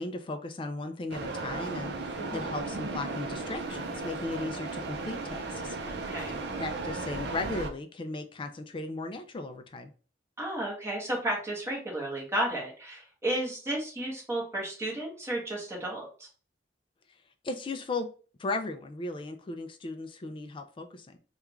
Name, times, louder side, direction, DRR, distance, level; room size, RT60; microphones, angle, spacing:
voice 1, 0.0-6.1 6.6-9.9 17.4-18.1 18.4-21.2, left 2 dB, 30° left, 8 dB, 0.3 m, -36 dB
sound 1, 1.1-7.7, right 3 dB, 65° right, 0.5 m, -35 dB
voice 2, 2.1-2.5 5.9-6.4 10.4-16.3, right 1 dB, 15° right, -2 dB, 1.2 m, -33 dB
3.4 x 2.3 x 3.0 m, 0.39 s
head